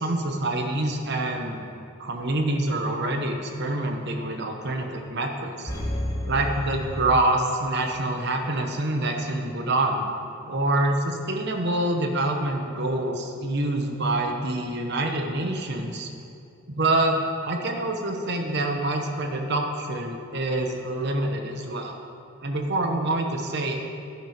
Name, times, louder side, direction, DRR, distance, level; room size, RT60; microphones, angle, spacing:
voice 1, 0.0-1.6 2.0-5.7 6.3-10.1 10.5-16.1 16.8-17.2 17.5-22.0 22.4-23.8, right 2 dB, 50° right, 3 dB, 1.0 m, -26 dB
sound 1, 5.7-7.9 8.2-8.3, left 1 dB, 15° left, 1.3 m, -31 dB
11.5 x 6.2 x 5.1 m, 2.5 s
head